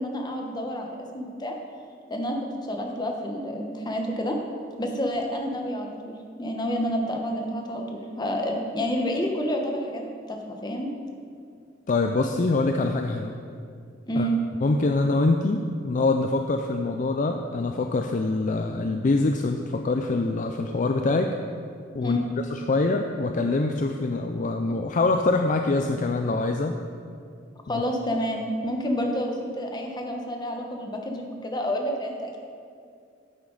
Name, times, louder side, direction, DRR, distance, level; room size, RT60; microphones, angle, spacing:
voice 1, 0.0-1.5 2.1-2.4 2.7-4.4 4.8-10.0 10.3-10.9 14.1-14.4 22.0-22.3 27.7-32.4, equal, 25° left, 2 dB, 1.0 m, -29 dB
voice 2, 11.9-13.4 14.2-14.3 14.6-21.4 21.9-26.8 27.7-27.8, left 3 dB, 45° left, 4 dB, 0.4 m, -24 dB
9.6 x 8.8 x 3.9 m, 2.3 s
head